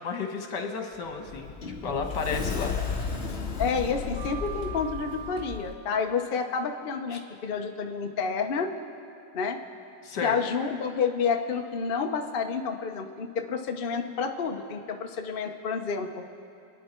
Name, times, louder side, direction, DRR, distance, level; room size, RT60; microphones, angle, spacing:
voice 1, 0.0-1.5 1.8-2.8 7.1-7.2 10.0-10.4, left 5 dB, 55° left, 3 dB, 1.9 m, -32 dB
Sliding door, 0.9-5.7, left 4 dB, 35° left, 1.3 m, -33 dB
voice 2, 3.6-8.7 9.3-9.6 10.2-16.2, left 5 dB, 70° left, 4 dB, 0.5 m, -29 dB
28.5 x 9.9 x 4.5 m, 2.9 s
omnidirectional pair, 2.3 m